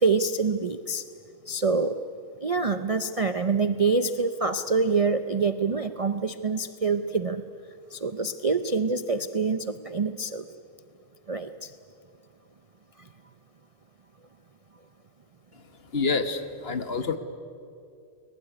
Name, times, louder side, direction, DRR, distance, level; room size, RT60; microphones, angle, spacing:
voice 1, 0.0-1.0 1.5-1.9 2.4-7.4 7.9-10.4 11.3-11.5, right 4 dB, 65° right, 10 dB, 0.3 m, -26 dB
voice 2, 15.9-17.2, left 4 dB, 40° left, 9 dB, 1.4 m, -27 dB
21.0 x 21.0 x 9.9 m, 2.5 s
omnidirectional pair, 1.7 m